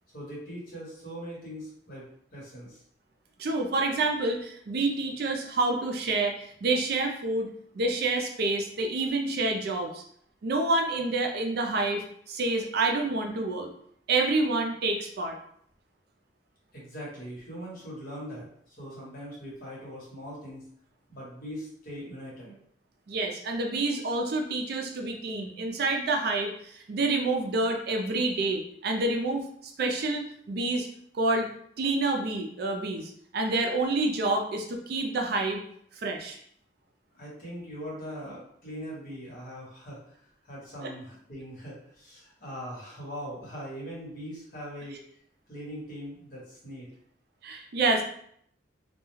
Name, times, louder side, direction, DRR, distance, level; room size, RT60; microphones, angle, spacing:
voice 1, 0.1-2.8 16.7-20.6 21.1-22.6 37.1-45.0 45.5-46.9, equal, 50° left, -5 dB, 1.1 m, -41 dB
voice 2, 3.4-10.0 10.4-13.7 14.1-15.4 23.1-29.5 29.8-30.9 31.1-31.5 31.8-35.6 36.0-36.4 40.8-40.9 47.4-48.0, right 2 dB, 55° right, 2 dB, 0.4 m, -28 dB
2.2 x 2.1 x 3.1 m, 0.66 s
head